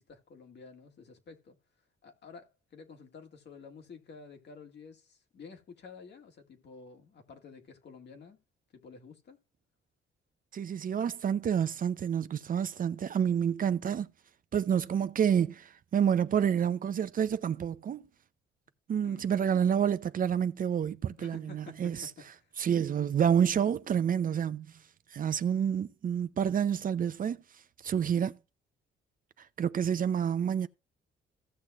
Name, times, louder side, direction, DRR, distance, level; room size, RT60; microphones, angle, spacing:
voice 1, 0.0-1.6 2.0-8.4 8.7-9.4 19.0-19.3 21.2-22.5, left 5 dB, 60° left, 1.9 m, -51 dB
voice 2, 10.5-14.1 14.5-18.0 18.9-22.1 22.6-24.7 25.1-27.4 27.8-28.4 29.6-30.7, right 8 dB, 45° right, 0.5 m, -28 dB
16.0 x 6.4 x 2.4 m
cardioid pair, 90°, 20 cm